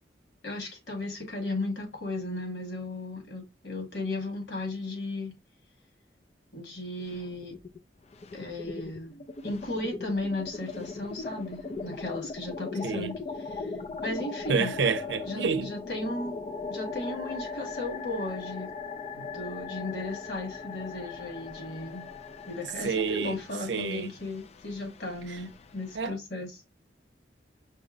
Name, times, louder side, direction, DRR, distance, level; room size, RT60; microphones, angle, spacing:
voice 1, 0.4-5.3 6.5-7.5 8.3-13.7 14.0-14.7 15.2-16.4 16.7-18.7 19.1-22.1 22.5-26.6, left 2 dB, 75° left, 1.9 m, -35 dB
sound 1, 7.0-7.8 8.1-26.1, left 4 dB, 35° left, 0.4 m, -39 dB
voice 2, 14.5-15.7 22.8-23.4 23.7-24.1 26.0-26.1, right 5 dB, 85° right, 0.6 m, -28 dB
5.4 x 2.0 x 3.8 m
head